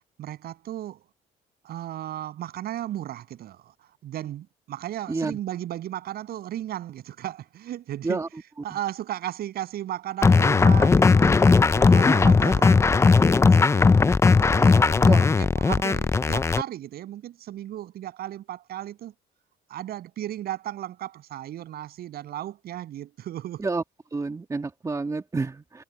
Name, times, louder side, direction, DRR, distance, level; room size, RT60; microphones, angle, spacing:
voice 1, 0.2-1.1 1.6-3.7 4.0-8.2 8.6-14.1 14.6-19.1 19.7-23.6, right 12 dB, 65° right, 7.9 m, -35 dB
sound 1, 10.2-16.6, left 4 dB, 15° left, 0.4 m, -18 dB
voice 2, 24.1-25.8, right 3 dB, 20° right, 2.2 m, -28 dB
cardioid pair, 110°, 17 cm